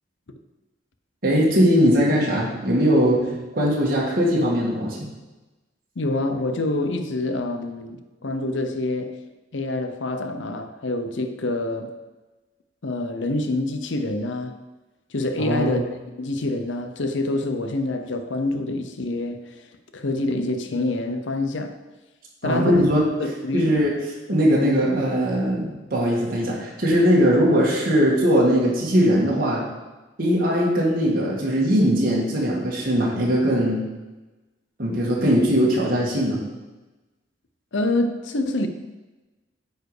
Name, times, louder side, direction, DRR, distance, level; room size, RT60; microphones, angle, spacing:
voice 1, 1.2-3.2 3.5-5.1 15.4-15.8 22.4-23.0 23.5-23.9 24.3-29.6 30.2-33.8 34.8-36.4, equal, 50° right, 1.7 m, -20 dB
voice 2, 6.0-9.2 9.5-11.9 12.8-14.6 15.1-15.8 16.2-19.6 19.9-21.8 22.4-22.9 23.2-23.7 37.7-38.7, left 2 dB, 70° left, 0.7 m, -26 dB
9.1 x 4.7 x 4.9 m
head